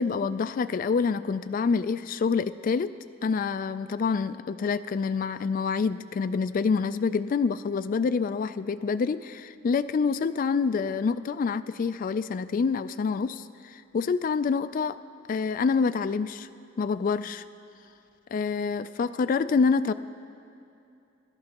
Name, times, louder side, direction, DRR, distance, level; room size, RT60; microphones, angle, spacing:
voice 1, 0.0-2.9 3.2-15.0 15.3-16.5 16.8-17.4 18.3-19.9, left 5 dB, 45° left, 12 dB, 0.3 m, -27 dB
24.5 x 12.0 x 2.9 m, 2.6 s
head